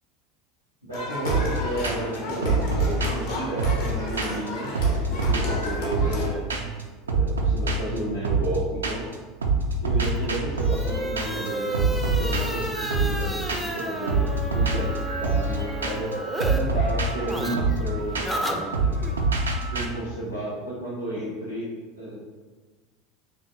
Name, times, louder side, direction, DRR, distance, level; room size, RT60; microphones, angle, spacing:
voice 1, 0.9-6.4 7.1-9.1 9.8-16.1 16.5-18.9 19.7-21.7 22.0-22.3, right 1 dB, 90° left, -10 dB, 0.6 m, -32 dB
sound 1, 0.9-6.3, left 1 dB, 55° left, 0.6 m, -33 dB
sound 2, 1.3-1.6 1.8-2.2 2.4-4.5 4.7-6.2 6.5-6.8 7.1-9.1 9.4-19.8, right 3 dB, 75° right, 0.3 m, -26 dB
sound 3, 10.0-16.6 16.9-19.1, equal, ahead, 0.3 m, -32 dB
2.7 x 2.2 x 3.3 m, 1.3 s
figure-of-eight pair, 75°, 0 cm